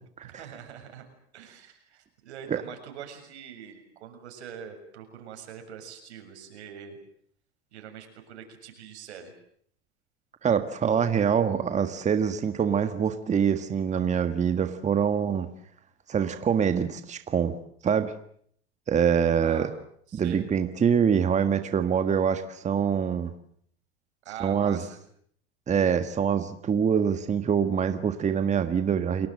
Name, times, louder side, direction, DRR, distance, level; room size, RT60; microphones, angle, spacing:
voice 1, 0.2-1.0 1.3-7.0 7.7-9.3 19.4-19.7 20.1-20.4 24.3-25.0, right 8 dB, 85° right, 6 dB, 7.1 m, -43 dB
voice 2, 10.4-15.5 16.1-17.5 17.8-18.1 18.9-19.7 20.1-23.3 24.4-24.8 25.7-29.3, right 7 dB, 20° right, 9 dB, 1.7 m, -25 dB
30.0 x 20.0 x 7.8 m, 0.65 s
supercardioid pair, 120°, 33 cm